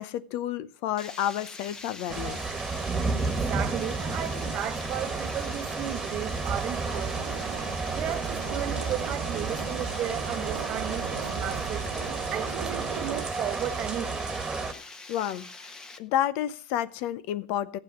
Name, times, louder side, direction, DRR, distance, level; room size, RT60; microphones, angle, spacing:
voice 1, 0.0-2.4 15.1-15.4 16.0-17.8, left 11 dB, 55° left, 0.8 m, -30 dB
Water, 1.0-16.0, left 3 dB, 15° left, 1.3 m, -44 dB
sound 1, 2.1-14.7, right 4 dB, 20° right, 1.7 m, -32 dB
voice 2, 3.2-7.3 7.9-11.9 12.3-14.3, right 11 dB, 40° right, 1.0 m, -35 dB
sound 2, 4.0-13.3, right 9 dB, 70° right, 1.2 m, -40 dB
15.0 x 8.2 x 5.7 m
hypercardioid pair, 100°, 4 cm